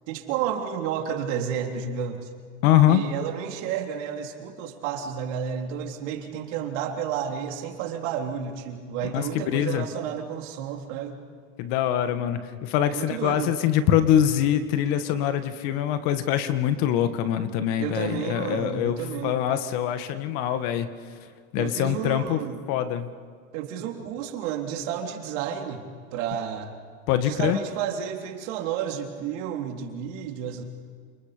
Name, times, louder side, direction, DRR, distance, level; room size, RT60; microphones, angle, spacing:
voice 1, 0.1-2.3 2.9-11.2 12.9-13.6 17.8-19.4 21.6-22.6 23.5-25.8 26.1-26.7 27.2-30.6, right 8 dB, 60° right, 2 dB, 3.6 m, -31 dB
voice 2, 2.6-3.0 9.1-9.9 11.6-20.9 21.5-22.4 22.7-23.1 27.1-27.6, left 11 dB, 50° left, 10 dB, 1.8 m, -24 dB
29.0 x 27.5 x 5.2 m, 2.1 s
supercardioid pair, 145°, 41 cm